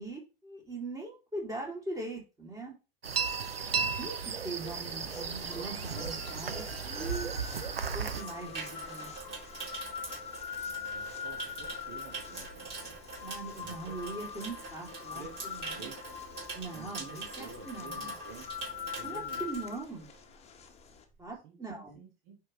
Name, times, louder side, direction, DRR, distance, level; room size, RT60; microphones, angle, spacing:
voice 1, 0.0-2.7 4.0-4.2 4.4-7.3 7.9-9.1 13.2-15.9 16.5-18.1 19.0-20.1 21.2-22.0, right 3 dB, 10° right, -1 dB, 2.8 m, -41 dB
sound 1, 3.0-8.2, right 5 dB, 85° right, 0.7 m, -34 dB
sound 2, 4.7-21.0, left 7 dB, 20° left, 1.2 m, -43 dB
Water tap faucet / Sink (filling or washing), 5.8-20.3 20.6-20.9, right 4 dB, 35° right, 3.6 m, -45 dB
voice 2, 10.9-13.0 13.6-14.0 15.1-16.2 16.7-18.7 19.0-19.4 21.4-22.4, right 5 dB, 50° right, 1 dB, 1.6 m, -50 dB
9.4 x 3.8 x 3.1 m, 0.29 s
figure-of-eight pair, 85°, 29 cm